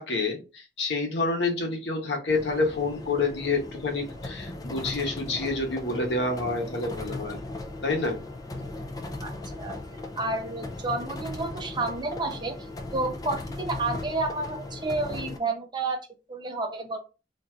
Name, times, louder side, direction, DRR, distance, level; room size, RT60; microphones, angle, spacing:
voice 1, 0.0-7.4 7.8-8.2, left 3 dB, 75° left, 1.0 m, -28 dB
sound 1, 2.3-15.4, left 2 dB, 20° left, 0.4 m, -38 dB
voice 2, 9.2-9.8 10.2-12.6 12.9-16.0 16.3-17.0, right 2 dB, 25° right, 0.7 m, -30 dB
4.3 x 2.5 x 2.4 m
head